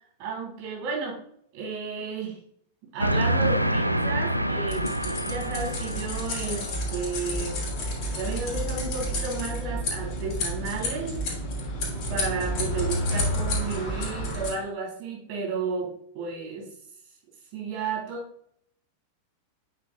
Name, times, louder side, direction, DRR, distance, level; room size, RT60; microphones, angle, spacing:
voice 1, 0.2-1.2 1.5-2.4 2.9-7.6 8.1-11.2 12.1-16.7 17.5-18.2, right 4 dB, 45° right, -1 dB, 3.3 m, -33 dB
Train, 3.0-6.9, right 1 dB, 90° right, 0.4 m, -27 dB
sound 1, 4.7-14.5, equal, 40° left, 3.1 m, -30 dB
8.6 x 7.4 x 2.3 m, 0.67 s
figure-of-eight pair, 90°, 0 cm